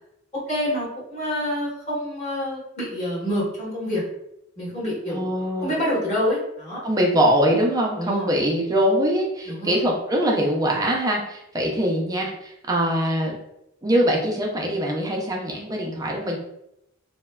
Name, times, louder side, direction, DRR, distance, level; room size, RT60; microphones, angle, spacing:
voice 1, 0.5-4.0 4.6-6.8 8.0-8.3 9.5-9.7, equal, 35° left, -9 dB, 1.4 m, -27 dB
voice 2, 5.1-5.7 6.8-13.3 13.8-16.4, equal, 15° right, -1 dB, 0.4 m, -23 dB
3.1 x 2.1 x 2.2 m, 0.82 s
head